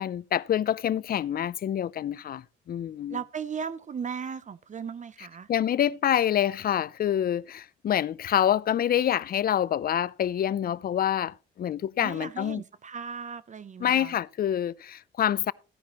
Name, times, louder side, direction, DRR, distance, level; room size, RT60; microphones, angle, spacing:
voice 1, 0.0-3.2 5.5-12.6 13.8-15.5, left 10 dB, 50° left, 0.5 m, -26 dB
voice 2, 3.1-5.5 12.0-14.1, right 6 dB, 40° right, 0.6 m, -36 dB
15.0 x 10.5 x 3.0 m
cardioid pair, 90°, 20 cm